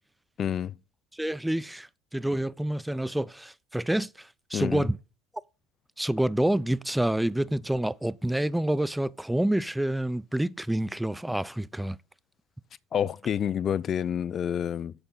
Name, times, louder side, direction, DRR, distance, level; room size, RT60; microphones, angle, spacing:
voice 1, 0.4-0.8 4.5-4.9 12.9-14.9, left 9 dB, 40° left, 0.5 m, -28 dB
voice 2, 1.1-5.0 6.0-12.0, right 1 dB, 5° right, 0.5 m, -28 dB
8.8 x 6.9 x 5.5 m
supercardioid pair, 95°, 0 cm